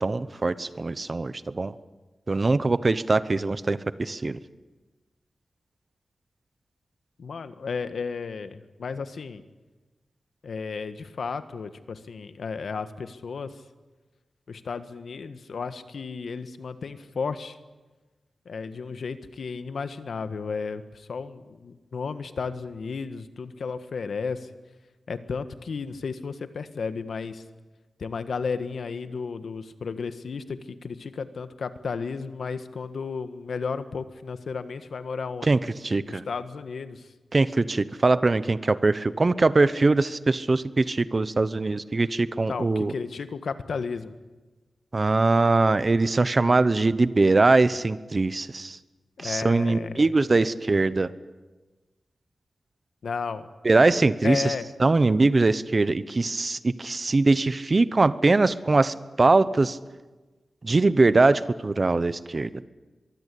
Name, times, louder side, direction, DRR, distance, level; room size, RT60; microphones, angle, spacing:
voice 1, 0.0-1.7 2.3-4.4 35.4-36.2 37.3-42.9 44.9-48.8 49.2-51.1 53.6-54.5 54.8-59.8 60.6-62.6, right 3 dB, 35° right, 15 dB, 0.9 m, -22 dB
voice 2, 7.2-9.4 10.4-13.6 14.5-17.6 18.4-24.5 25.1-27.4 28.0-35.5 36.1-37.1 42.4-44.1 49.2-50.1 53.0-53.5 54.2-54.7, left 5 dB, 80° left, 11 dB, 1.5 m, -33 dB
23.5 x 23.0 x 8.5 m, 1.2 s
wide cardioid pair, 120°, 0 cm